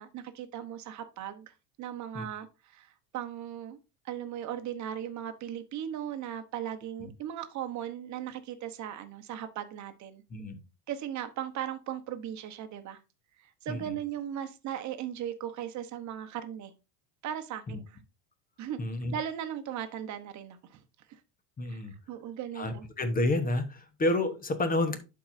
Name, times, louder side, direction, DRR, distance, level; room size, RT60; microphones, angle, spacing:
voice 1, 0.0-3.8 4.0-10.2 10.9-13.0 13.4-16.7 17.2-18.0 18.6-18.8 19.1-20.8 21.1-21.2 21.7-21.8 22.1-22.8, right 10 dB, 40° right, 1.0 m, -38 dB
voice 2, 18.8-19.1 21.6-21.9 22.6-25.0, left 2 dB, 20° left, 1.1 m, -29 dB
11.5 x 4.7 x 2.6 m
supercardioid pair, 130°, 44 cm